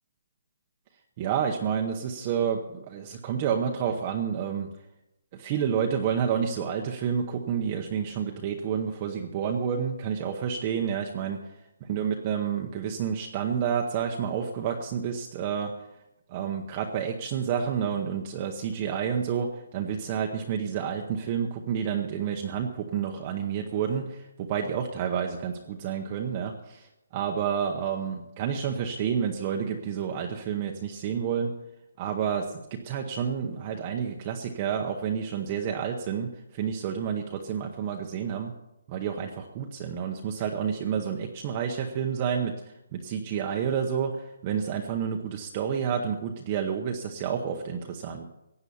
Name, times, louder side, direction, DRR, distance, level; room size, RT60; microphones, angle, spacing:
voice 1, 1.2-4.7 5.3-11.5 11.9-15.7 16.3-31.5 32.0-38.5 38.9-42.5 42.9-48.3, right 7 dB, 20° right, 2 dB, 0.8 m, -29 dB
16.0 x 9.7 x 7.1 m, 0.88 s
hypercardioid pair, 180°, 0 cm